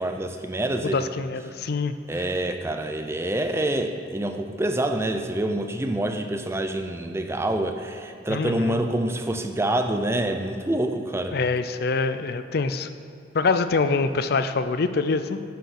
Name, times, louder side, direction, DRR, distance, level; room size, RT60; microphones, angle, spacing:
voice 1, 0.0-1.1 2.1-11.4, right 1 dB, 15° right, 6 dB, 0.5 m, -26 dB
voice 2, 0.8-1.9 8.3-8.8 11.3-12.9 13.3-15.4, left 4 dB, 55° left, 11 dB, 0.4 m, -25 dB
10.0 x 5.4 x 5.9 m, 2.5 s
head